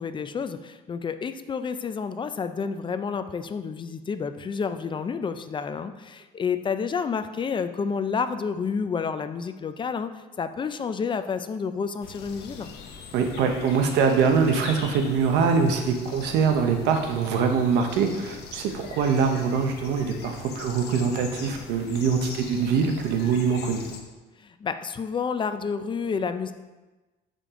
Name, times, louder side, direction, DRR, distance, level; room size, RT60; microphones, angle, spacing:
voice 1, 0.0-12.7 24.4-26.5, left 5 dB, 30° left, 10 dB, 0.5 m, -30 dB
sound 1, 12.0-24.0, left 5 dB, 75° left, 0.9 m, -42 dB
voice 2, 13.1-23.9, right 5 dB, 90° right, 4 dB, 0.9 m, -23 dB
6.7 x 5.1 x 3.7 m, 1.2 s
cardioid pair, 110°, 17 cm